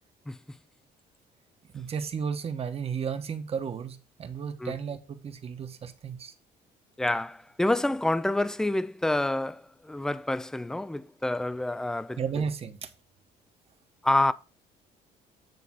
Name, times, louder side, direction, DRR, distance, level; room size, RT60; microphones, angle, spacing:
voice 1, 0.3-0.6 4.6-4.8 7.0-12.2 14.0-14.3, left 1 dB, 5° left, 0.4 m, -28 dB
voice 2, 1.7-6.3 12.2-12.9, right 6 dB, 35° right, 1.0 m, -33 dB
9.3 x 3.3 x 6.0 m
cardioid pair, 120°, 17 cm